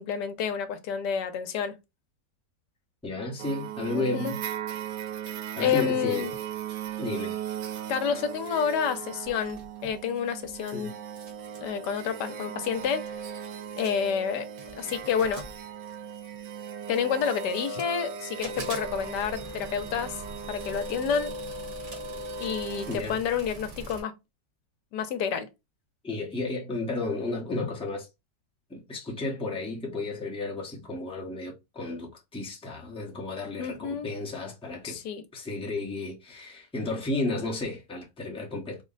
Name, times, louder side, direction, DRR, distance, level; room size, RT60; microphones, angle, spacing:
voice 1, 0.0-1.7 3.9-4.3 5.6-6.3 7.9-10.9 11.6-13.1 13.8-14.5 14.7-15.4 16.9-20.2 20.5-21.3 22.4-24.1 24.9-25.5 33.6-34.1 34.8-35.2, left 7 dB, 75° left, 1.2 m, -29 dB
voice 2, 3.0-4.4 5.6-6.3 7.0-7.4 10.7-10.9 22.9-23.2 26.0-28.1 28.7-35.0 35.3-38.8, left 2 dB, 5° left, 0.6 m, -33 dB
sound 1, 3.4-23.0, right 6 dB, 85° right, 1.3 m, -38 dB
sound 2, 9.2-10.7 11.0-11.7 12.4-12.5 12.6-13.2 13.6-14.1 14.6-16.3 16.9-18.0 18.4-24.0, right 3 dB, 45° right, 1.3 m, -44 dB
3.8 x 2.1 x 3.8 m
omnidirectional pair, 1.9 m